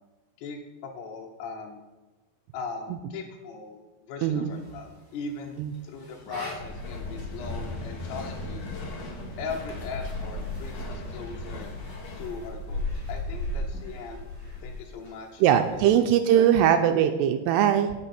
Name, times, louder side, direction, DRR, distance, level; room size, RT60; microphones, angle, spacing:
voice 1, 0.4-1.8 2.5-8.7 9.4-11.7 12.2-14.2 14.6-16.1 16.4-16.5, left 4 dB, 75° left, 0 dB, 3.0 m, -39 dB
sound 1, 4.5-16.0, left 1 dB, 10° left, 1.1 m, -47 dB
sound 2, 6.6-14.9, left 2 dB, 50° left, 2.2 m, -35 dB
voice 2, 15.4-17.9, right 10 dB, 85° right, 8 dB, 2.6 m, -21 dB
17.0 x 6.2 x 4.3 m, 1.2 s
omnidirectional pair, 5.0 m